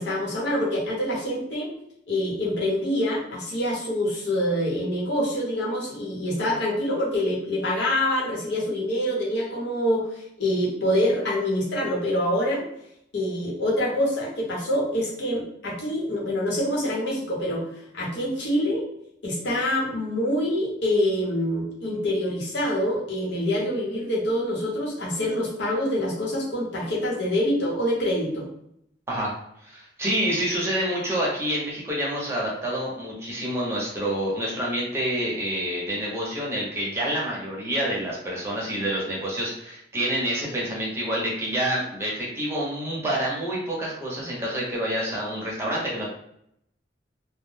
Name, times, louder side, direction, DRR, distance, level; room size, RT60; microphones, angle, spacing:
voice 1, 0.0-1.7 2.1-12.6 13.1-17.6 17.9-18.8 19.2-28.5, left 1 dB, 85° left, -5 dB, 1.0 m, -26 dB
voice 2, 29.6-46.1, right 1 dB, 15° right, -5 dB, 0.7 m, -28 dB
2.3 x 2.1 x 3.2 m, 0.75 s
head